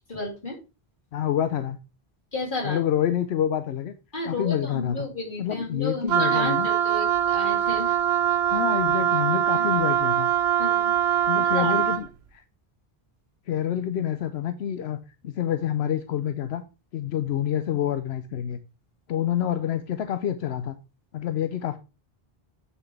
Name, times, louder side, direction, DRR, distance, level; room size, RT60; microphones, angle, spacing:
voice 1, 0.1-0.6 2.3-2.8 4.1-7.9 9.5-9.7 10.6-11.7, left 2 dB, 55° left, -1 dB, 2.9 m, -33 dB
voice 2, 1.1-1.8 2.6-3.9 4.2-5.1 5.4-6.7 8.5-10.3 11.3-12.1 12.3-12.4 13.5-15.0 15.2-16.6 16.9-18.6 19.1-20.7 21.1-21.8, left 10 dB, 90° left, 10 dB, 0.9 m, -27 dB
Wind instrument woodwind instrument, 6.1-12.1, right 9 dB, 80° right, 0.8 m, -23 dB
8.1 x 7.0 x 3.4 m, 0.30 s
omnidirectional pair, 1.0 m